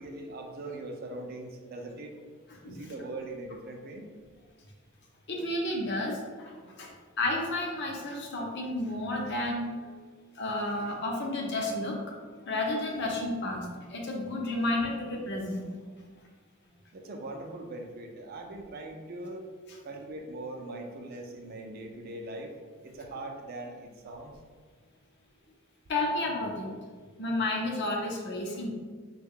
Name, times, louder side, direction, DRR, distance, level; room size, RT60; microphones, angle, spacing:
voice 1, 0.0-2.1 2.6-4.1 16.9-19.4 19.8-22.5 22.8-24.3, right 2 dB, 45° right, 3 dB, 0.4 m, -41 dB
voice 2, 2.5-2.8 5.3-6.9 7.2-9.9 10.3-12.0 12.4-15.7 25.9-26.7 27.2-28.7, left 2 dB, 55° left, 0 dB, 0.6 m, -31 dB
3.6 x 2.2 x 3.5 m, 1.5 s
head